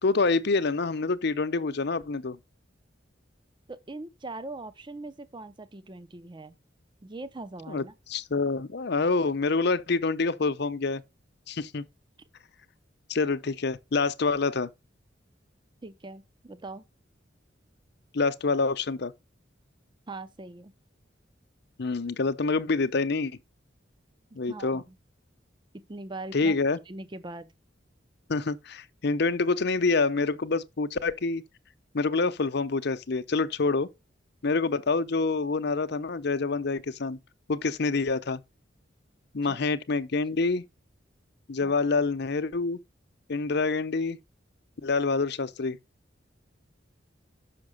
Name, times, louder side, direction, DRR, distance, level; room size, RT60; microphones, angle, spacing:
voice 1, 0.0-2.4 7.7-11.0 11.5-11.8 13.1-14.7 18.1-19.1 21.8-23.4 24.3-24.8 26.3-26.8 28.3-31.4 31.9-33.9 34.4-37.2 37.5-38.4 39.3-40.6 41.5-42.8 43.3-44.2 44.8-45.8, left 3 dB, 60° left, 0.7 m, -27 dB
voice 2, 3.7-6.5 7.0-7.9 15.8-16.8 20.1-20.7 24.3-25.0 25.9-26.6 26.9-27.5 39.4-39.6 41.6-41.7, right 2 dB, 25° right, 0.6 m, -41 dB
6.3 x 6.0 x 6.4 m
head